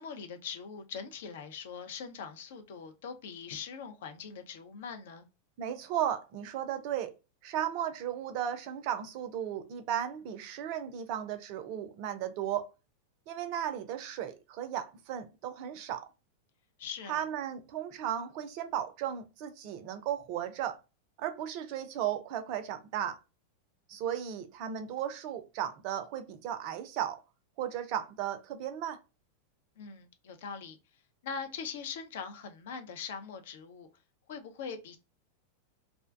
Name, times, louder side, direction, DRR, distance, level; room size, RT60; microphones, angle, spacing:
voice 1, 0.0-5.3 16.8-17.2 29.8-30.8 31.2-33.9 34.3-35.0, left 6 dB, 55° left, 0.5 m, -42 dB
voice 2, 5.6-7.1 7.4-12.7 13.3-16.1 17.1-20.8 21.2-23.2 23.9-27.2 27.6-29.0, right 10 dB, 45° right, 0.4 m, -35 dB
2.4 x 2.1 x 2.3 m
figure-of-eight pair, 90°, 0 cm